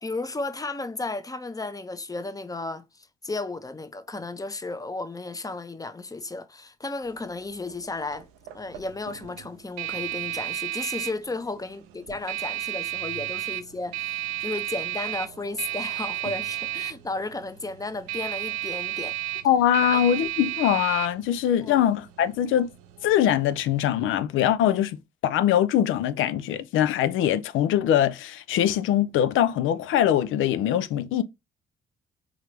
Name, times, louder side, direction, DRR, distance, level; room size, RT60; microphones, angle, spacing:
voice 1, 0.0-8.3 8.5-19.2 19.9-20.0 21.6-21.8, left 3 dB, 15° left, 0.7 m, -34 dB
sound 1, 7.0-23.9, right 15 dB, 80° right, 0.6 m, -34 dB
voice 2, 19.4-22.7 23.0-31.2, left 10 dB, 70° left, 0.5 m, -22 dB
3.8 x 3.1 x 3.2 m
hypercardioid pair, 50°, 21 cm